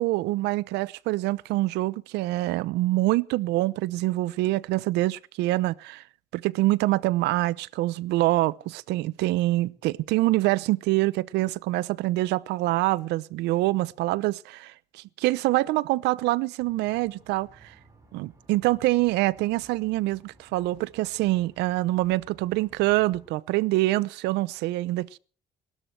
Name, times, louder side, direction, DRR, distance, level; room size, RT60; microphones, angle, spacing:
voice 1, 0.0-6.0 6.3-17.7 18.1-25.2, right 18 dB, 90° right, 0.7 m, -25 dB
sound 1, 16.6-23.3, right 2 dB, 20° right, 6.9 m, -57 dB
29.0 x 13.0 x 3.3 m
cardioid pair, 110°, 17 cm